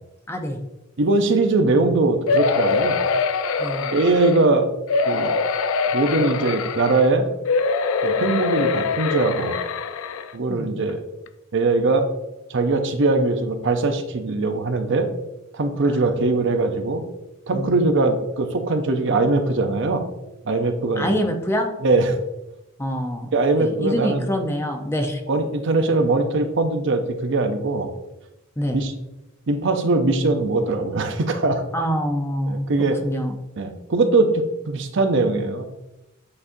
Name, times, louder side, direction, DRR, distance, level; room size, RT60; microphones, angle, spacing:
voice 1, 0.3-0.6 3.6-3.9 10.5-10.7 15.8-16.1 17.5-17.9 21.0-21.7 22.8-23.3 23.6-25.2 28.6-28.8 31.7-32.7 33.0-33.4, equal, 10° left, 3 dB, 0.6 m, -25 dB
voice 2, 1.0-3.0 3.9-4.7 5.1-5.3 5.9-7.3 8.0-9.6 10.3-11.0 11.5-12.1 12.5-15.1 15.5-17.0 17.5-20.0 20.4-21.2 21.8-22.2 23.3-24.3 25.3-27.9 28.7-28.9 29.5-31.6 32.7-33.0 33.6-35.6, right 3 dB, 60° right, 6 dB, 0.6 m, -21 dB
sound 1, 2.3-4.4 4.9-7.1 7.4-10.3 10.9-11.0 11.3-11.4, left 4 dB, 80° left, 0.4 m, -23 dB
8.6 x 4.2 x 2.6 m, 0.96 s
head